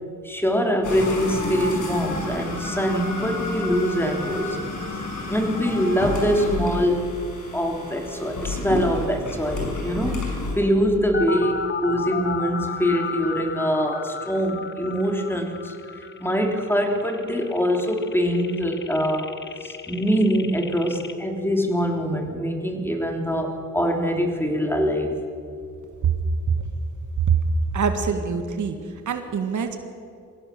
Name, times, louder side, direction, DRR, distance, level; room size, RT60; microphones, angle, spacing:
voice 1, 0.2-4.6 5.2-7.0 7.5-19.4 19.6-25.1, equal, 5° left, 2 dB, 3.2 m, -24 dB
sound 1, 0.8-10.5, left 2 dB, 70° left, 6.1 m, -30 dB
sound 2, 11.1-21.1, left 5 dB, 35° left, 1.3 m, -34 dB
voice 2, 27.7-28.8 29.0-29.8, right 5 dB, 65° right, 7 dB, 1.8 m, -25 dB
22.5 x 16.5 x 6.9 m, 2.5 s
cardioid pair, 80°, 32 cm